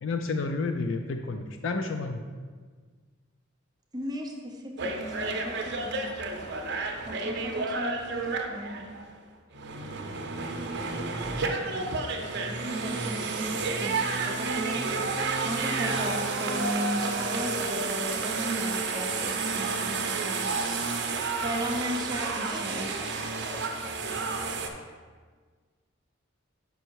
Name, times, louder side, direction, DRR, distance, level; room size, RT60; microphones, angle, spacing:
voice 1, 0.0-2.2, left 3 dB, 65° left, 5 dB, 0.4 m, -30 dB
voice 2, 3.9-6.2 7.0-8.9 12.5-13.9 14.3-20.8 21.4-22.9, equal, 20° right, 1 dB, 0.7 m, -36 dB
sound 1, 4.8-9.1 9.5-24.7, right 3 dB, 55° right, 0.6 m, -31 dB
voice 3, 22.5-24.3, equal, 15° left, 0 dB, 0.9 m, -46 dB
5.5 x 5.5 x 4.6 m, 1.5 s
head